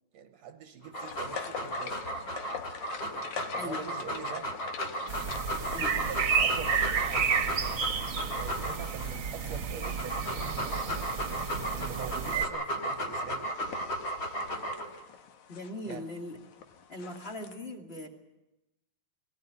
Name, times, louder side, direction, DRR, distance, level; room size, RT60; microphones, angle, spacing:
voice 1, 0.1-2.1 3.5-4.6 5.9-11.2 11.7-13.5 15.9-16.1, right 8 dB, 70° right, 2.1 m, -44 dB
Dog, 0.8-9.1 9.6-15.0, equal, 45° left, 4.2 m, -35 dB
sound 1, 1.0-17.5, left 7 dB, 80° left, 2.7 m, -46 dB
sound 2, 5.1-12.5, right 6 dB, 50° right, 1.9 m, -31 dB
voice 2, 15.5-16.4 16.9-18.1, left 2 dB, 20° left, 2.3 m, -39 dB
21.5 x 18.0 x 9.8 m
omnidirectional pair, 3.3 m